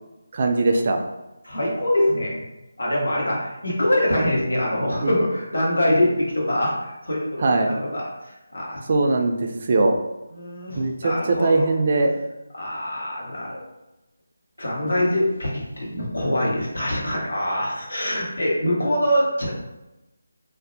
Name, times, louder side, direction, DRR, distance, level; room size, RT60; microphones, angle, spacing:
voice 1, 0.3-1.0 5.0-5.1 7.4-7.7 8.9-10.0 10.8-12.2, right 2 dB, 40° right, 3 dB, 0.3 m, -20 dB
voice 2, 1.4-2.4 2.8-8.8 10.3-11.7 12.5-13.7 14.6-19.5, left 1 dB, 80° left, -5 dB, 1.1 m, -24 dB
2.5 x 2.0 x 2.6 m, 0.98 s
figure-of-eight pair, 160°, 0 cm